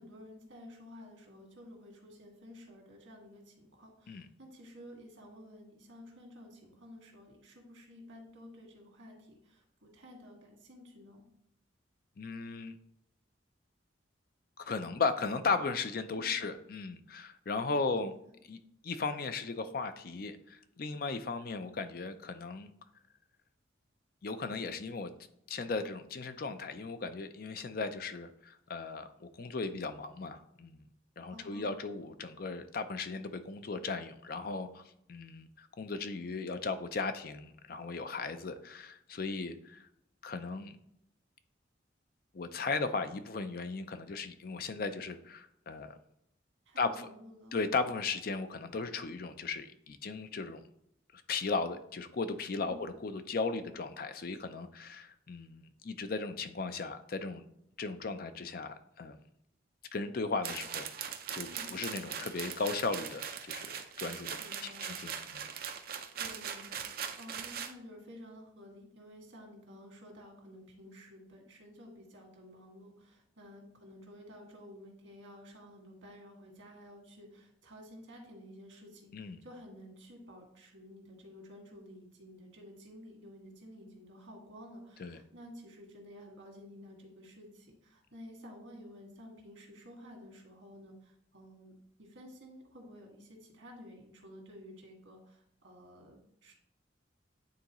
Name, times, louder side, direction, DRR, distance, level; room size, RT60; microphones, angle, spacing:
voice 1, 0.0-11.2 16.2-16.5 17.8-18.0 31.3-31.9 46.7-47.6 52.5-52.8 61.4-61.8 64.4-64.9 66.2-91.7 92.0-96.5, equal, 85° right, 1 dB, 1.8 m, -52 dB
voice 2, 12.2-12.7 14.6-18.1 18.5-18.6 18.8-22.7 24.2-25.1 25.5-30.8 31.2-34.8 35.1-39.9 40.2-40.8 42.3-46.0 46.8-47.1 47.5-50.6 51.1-57.5 57.8-59.2 59.9-64.3 64.6-65.4 79.1-79.4 85.0-85.2, left 4 dB, 50° left, 10 dB, 0.5 m, -36 dB
sound 1, 60.4-67.7, right 8 dB, 50° right, 0.5 m, -40 dB
9.4 x 3.8 x 3.0 m, 0.74 s
head